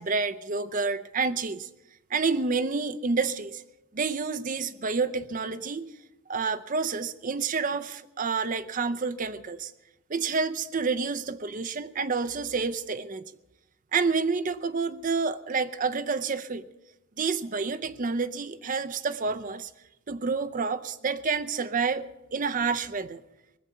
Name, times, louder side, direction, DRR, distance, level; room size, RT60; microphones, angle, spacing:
voice 1, 0.0-1.7 2.1-3.6 3.9-5.9 6.3-9.7 10.1-13.2 13.9-16.6 17.2-19.7 20.1-23.2, right 4 dB, 40° right, 11 dB, 0.6 m, -29 dB
19.5 x 7.3 x 8.0 m, 0.93 s
head